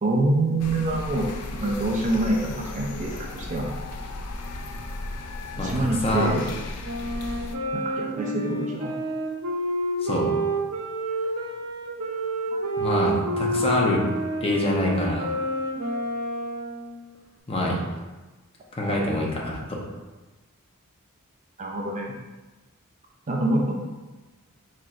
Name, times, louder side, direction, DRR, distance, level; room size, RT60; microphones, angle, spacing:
voice 1, 0.0-3.7 5.6-6.5 7.7-8.9 12.5-12.7 13.6-13.9 21.6-22.1 23.3-23.7, right 2 dB, 35° right, -1 dB, 0.5 m, -26 dB
sound 1, 0.6-7.6, left 2 dB, 90° left, 0.5 m, -35 dB
voice 2, 6.0-6.3 10.0-10.3 12.8-14.0 14.4-15.3 17.5-17.8 18.8-19.8, left 1 dB, 25° left, -2 dB, 0.8 m, -25 dB
Wind instrument woodwind instrument, 6.8-16.9, right 1 dB, 85° right, 0.7 m, -29 dB
4.5 x 4.3 x 2.5 m, 1.2 s
head